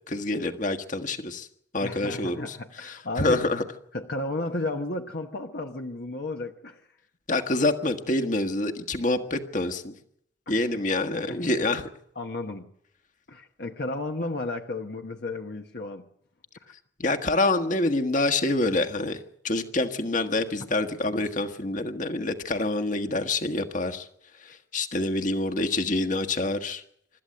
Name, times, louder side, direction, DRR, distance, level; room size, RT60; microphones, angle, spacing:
voice 1, 0.1-1.5 1.7-2.6 2.8-3.6 7.3-9.9 10.5-11.9 17.0-19.2 19.4-24.1 24.7-26.8, left 2 dB, 45° left, 1.6 m, -26 dB
voice 2, 1.8-3.4 3.9-6.8 10.5-10.7 11.3-11.4 12.1-12.7 13.3-16.0 16.6-16.7, left 2 dB, 60° left, 1.2 m, -33 dB
25.5 x 13.5 x 7.8 m
head